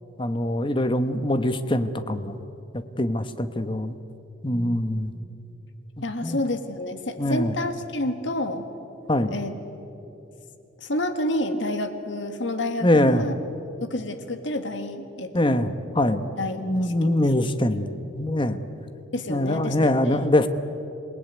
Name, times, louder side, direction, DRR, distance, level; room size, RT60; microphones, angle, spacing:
voice 1, 0.2-2.4 3.0-3.9 4.4-5.1 6.2-6.4 7.2-7.5 9.1-9.3 12.8-13.3 15.3-16.3 16.6-17.9 18.2-18.6 19.3-20.5, left 1 dB, 25° left, 10 dB, 1.1 m, -23 dB
voice 2, 4.5-5.0 6.0-8.7 9.3-9.5 10.8-13.3 13.8-15.7 16.4-17.1 19.1-20.3, left 1 dB, 75° left, 8 dB, 1.8 m, -29 dB
27.0 x 19.0 x 9.5 m, 2.9 s
head